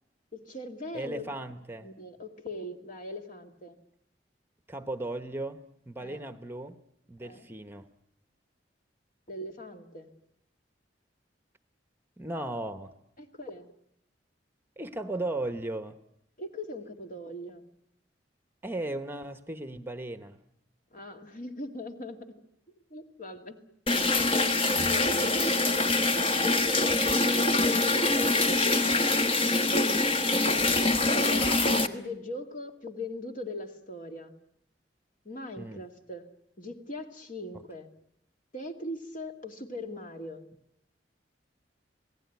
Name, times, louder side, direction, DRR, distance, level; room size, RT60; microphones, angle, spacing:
voice 1, 0.3-1.2 1.8-3.8 6.0-6.3 7.2-7.5 9.3-10.1 13.2-13.7 16.4-17.7 20.9-22.4 22.9-23.6 24.9-25.7 27.6-28.8 31.0-34.3 35.2-36.3 36.6-37.9 38.5-40.5, left 1 dB, 45° left, 5 dB, 2.5 m, -40 dB
voice 2, 0.9-1.9 4.7-5.6 5.9-6.8 7.1-7.9 12.2-12.9 14.8-16.0 18.6-20.4 35.6-35.8 37.5-37.6, right 2 dB, 15° right, 10 dB, 1.0 m, -36 dB
sound 1, 23.9-31.9, left 2 dB, 30° left, 1.3 m, -24 dB
27.5 x 18.0 x 9.4 m, 0.76 s
head